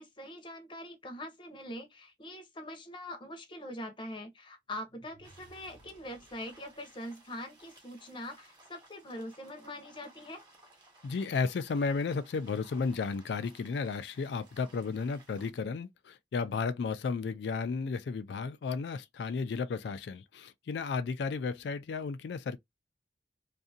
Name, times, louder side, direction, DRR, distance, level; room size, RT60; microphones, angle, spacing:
voice 1, 0.0-10.4, left 1 dB, 25° left, 0.7 m, -43 dB
sound 1, 4.7-6.8, right 1 dB, 80° right, 0.7 m, -60 dB
sound 2, 5.2-15.5, right 2 dB, 25° right, 1.0 m, -59 dB
voice 2, 11.0-22.6, left 4 dB, 70° left, 0.3 m, -33 dB
2.6 x 2.4 x 2.6 m
head